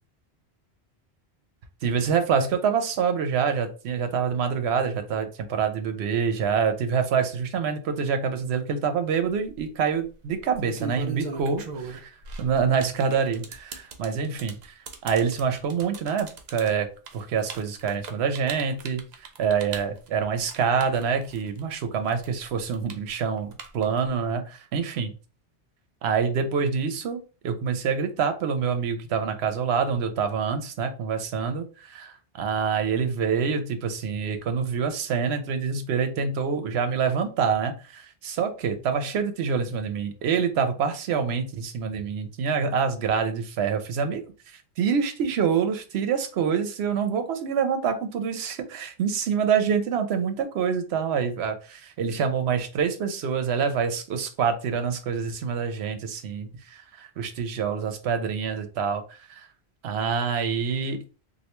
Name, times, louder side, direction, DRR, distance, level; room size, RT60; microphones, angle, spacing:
voice 1, 1.8-12.1 12.4-14.7 15.0-16.9 17.1-19.0 19.4-25.1 26.0-59.5 59.8-61.0, right 6 dB, 80° right, 7 dB, 0.9 m, -26 dB
sound 1, 9.3-9.6 10.4-21.7 22.0-24.1, right 5 dB, 55° right, 0.5 m, -39 dB
3.2 x 2.5 x 3.0 m, 0.34 s
omnidirectional pair, 1.1 m